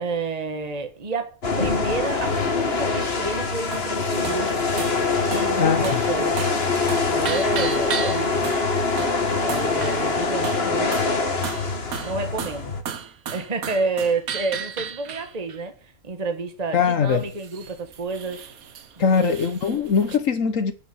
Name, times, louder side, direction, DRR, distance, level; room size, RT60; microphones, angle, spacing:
voice 1, 0.0-4.6 5.3-6.4 7.1-8.4 9.4-11.2 12.0-12.7 13.3-18.4 19.0-19.4, right 3 dB, 25° right, 1.6 m, -30 dB
sound 1, 1.4-12.8, left 4 dB, 45° left, 1.9 m, -24 dB
sound 2, 3.7-3.9 4.2-4.5 4.8-5.0 5.3-5.5 5.8-6.1 6.4-6.6 6.9-8.7 9.0-9.2 9.5-10.1 10.4-11.2 11.4-15.6 17.1-20.2, right 7 dB, 75° right, 1.5 m, -34 dB
voice 2, 5.6-6.0 16.7-17.2 19.0-20.7, left 6 dB, 65° left, 1.4 m, -21 dB
12.0 x 6.4 x 9.6 m
omnidirectional pair, 1.5 m